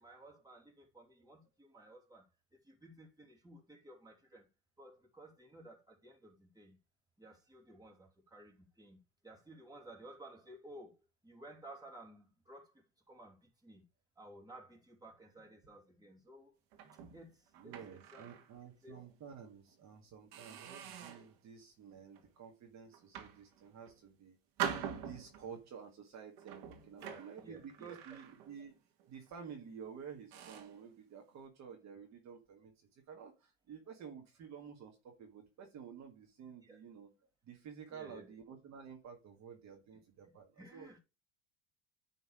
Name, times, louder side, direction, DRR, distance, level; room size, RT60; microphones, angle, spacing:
voice 1, 0.0-2.3 2.6-4.5 4.8-6.8 7.2-9.0 9.2-11.0 11.2-13.8 14.2-16.5 17.1-17.7 18.1-18.4 18.8-19.0 27.0-28.2 36.6-36.8 37.9-38.3 40.6-41.0, right 1 dB, 10° right, 2.9 m, -55 dB
sound 1, 16.7-18.5 19.0-19.1 19.7-19.8 20.3-21.4 21.9-22.3 22.9-24.0 24.6-25.6 26.4-28.7 29.0-29.3 29.8-29.9 30.3-30.8, right 9 dB, 65° right, 2.3 m, -44 dB
voice 2, 17.5-24.4 25.0-28.7 29.1-37.1 37.4-40.9, right 7 dB, 45° right, 2.0 m, -51 dB
10.0 x 4.0 x 4.9 m
supercardioid pair, 100°, 38 cm